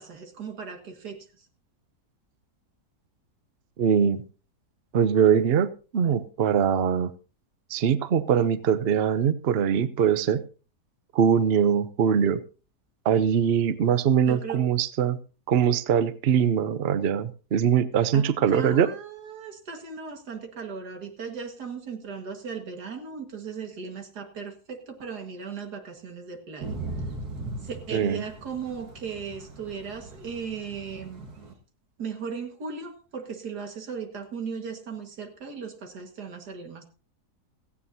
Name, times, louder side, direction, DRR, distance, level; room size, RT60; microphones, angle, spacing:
voice 1, 0.0-1.5 14.3-14.6 18.1-26.8 27.6-31.3 32.0-36.8, right 6 dB, 90° right, 5 dB, 2.4 m, -37 dB
voice 2, 3.8-4.2 4.9-7.1 7.7-10.4 11.1-12.4 13.0-15.2 15.5-18.9 27.9-28.2, right 8 dB, 50° right, 14 dB, 0.8 m, -22 dB
Thunder / Rain, 26.6-31.5, right 2 dB, 70° right, 2.5 m, -39 dB
17.0 x 14.5 x 2.8 m, 0.34 s
omnidirectional pair, 1.7 m